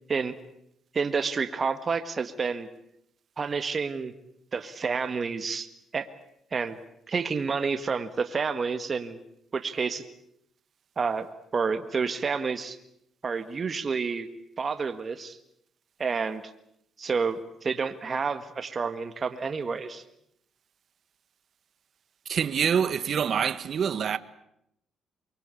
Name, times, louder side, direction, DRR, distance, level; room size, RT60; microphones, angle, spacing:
voice 1, 0.9-2.7 3.4-4.1 4.5-5.7 5.9-6.1 6.5-6.8 7.1-9.2 9.5-10.0 11.0-11.3 11.5-12.8 13.2-14.3 14.6-15.4 16.0-16.4 17.0-20.0, right 5 dB, 40° right, 1.7 m, -29 dB
voice 2, 22.3-24.2, right 7 dB, 55° right, 1.2 m, -26 dB
24.0 x 23.5 x 8.4 m
cardioid pair, 90°, 0 cm